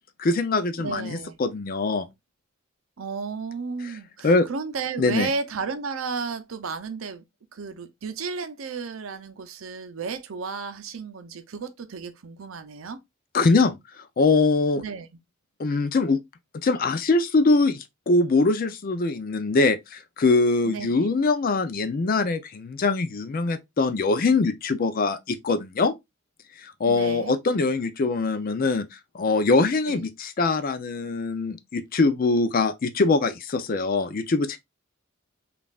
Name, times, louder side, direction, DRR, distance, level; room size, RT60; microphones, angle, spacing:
voice 1, 0.2-2.1 4.2-4.5 5.0-5.3 13.3-13.8 14.2-14.8 15.6-16.2 16.6-25.9 26.6-28.8 29.1-34.6, left 3 dB, 45° left, 0.5 m, -23 dB
voice 2, 0.8-1.4 3.0-7.2 7.5-13.0 14.8-15.1 20.6-21.1 26.9-27.4 29.9-30.1, right 5 dB, 75° right, 0.6 m, -33 dB
5.2 x 2.4 x 2.3 m
head